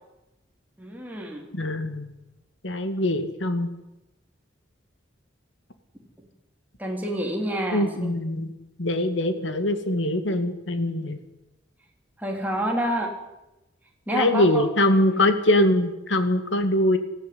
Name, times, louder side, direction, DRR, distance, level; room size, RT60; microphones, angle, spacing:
voice 1, 0.8-1.5 6.8-8.1 12.2-13.1 14.1-14.7 15.0-15.2, right 1 dB, 10° right, 1 dB, 3.6 m, -28 dB
voice 2, 1.5-2.1 2.6-3.7 7.7-8.5 8.8-11.2 14.1-17.0, left 1 dB, 70° left, 9 dB, 2.2 m, -23 dB
20.5 x 15.0 x 9.7 m, 0.95 s
head